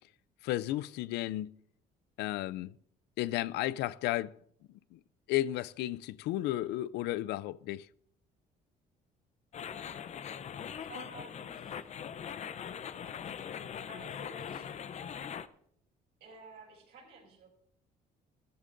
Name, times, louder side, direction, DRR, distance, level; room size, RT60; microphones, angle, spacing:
voice 1, 0.4-1.5 2.2-2.7 3.2-4.3 4.9-5.0 5.3-7.9, left 15 dB, 85° left, 0.4 m, -33 dB
sound 1, 9.5-15.5, left 8 dB, 40° left, 0.6 m, -41 dB
voice 2, 10.8-11.9 13.9-14.7 16.2-17.5, right 3 dB, 75° right, 6.0 m, -52 dB
15.5 x 14.0 x 2.6 m
cardioid pair, 110°, 17 cm